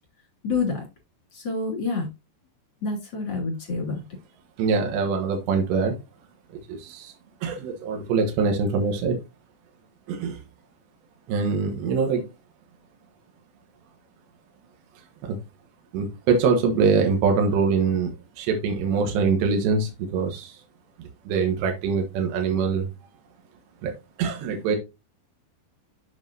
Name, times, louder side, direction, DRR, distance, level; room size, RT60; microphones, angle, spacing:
voice 1, 0.4-0.8 1.3-2.1 2.8-4.0, left 4 dB, 25° left, 0 dB, 3.2 m, -27 dB
voice 2, 4.6-6.0 6.5-7.1 7.4-9.2 10.1-10.4 11.3-12.3 15.2-15.4 15.9-20.6 21.0-22.9 23.8-23.9 24.2-24.8, right 5 dB, 70° right, 3 dB, 3.3 m, -24 dB
7.8 x 7.3 x 2.7 m, 0.25 s
omnidirectional pair, 5.5 m